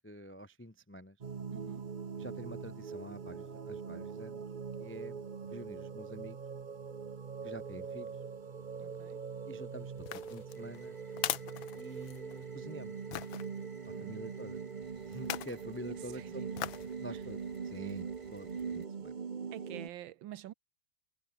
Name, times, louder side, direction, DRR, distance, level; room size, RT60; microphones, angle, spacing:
voice 1, 0.0-1.2 2.2-4.4 4.8-5.2 5.5-6.4 7.4-8.2 9.5-11.0 11.7-13.0 14.0-14.6 15.1-16.5 17.0-17.4 17.6-19.2, equal, 15° left, 0.4 m, -47 dB
sound 1, 1.2-19.9, right 6 dB, 40° right, 0.6 m, -42 dB
voice 2, 1.5-1.9 8.8-9.2 13.9-14.2 16.1-16.4 17.1-17.2 19.5-20.5, right 13 dB, 75° right, 1.5 m, -48 dB
sound 2, 10.0-12.4 13.1-13.5 15.1-15.6 16.6-16.9 17.4-17.5, left 13 dB, 80° left, 1.6 m, -39 dB
sound 3, 10.5-18.9, right 2 dB, 15° right, 1.9 m, -61 dB
omnidirectional pair, 2.2 m